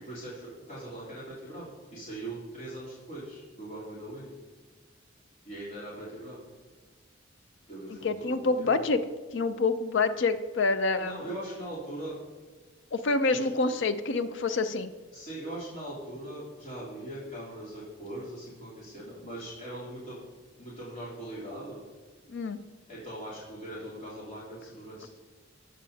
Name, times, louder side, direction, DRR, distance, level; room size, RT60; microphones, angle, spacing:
voice 1, 0.0-4.3 5.4-6.4 7.7-8.9 11.0-12.2 13.3-13.5 15.1-20.2 20.6-21.8 22.9-25.1, right 1 dB, 40° left, -9 dB, 3.4 m, -41 dB
voice 2, 8.0-9.0 9.3-11.2 12.9-14.9 22.3-22.6, left 3 dB, 70° left, 11 dB, 0.5 m, -27 dB
13.5 x 9.3 x 2.8 m, 1.4 s
head